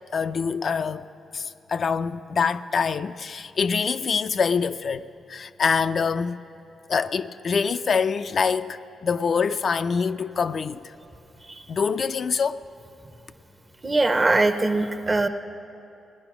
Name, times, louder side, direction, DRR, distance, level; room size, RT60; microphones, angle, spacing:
voice 1, 0.1-1.1 1.3-6.4 6.9-10.9 11.7-12.6, left 5 dB, 55° left, 0.4 m, -25 dB
voice 2, 13.8-15.3, right 2 dB, 30° right, 0.9 m, -21 dB
18.0 x 10.0 x 6.0 m
cardioid pair, 70°, 0 cm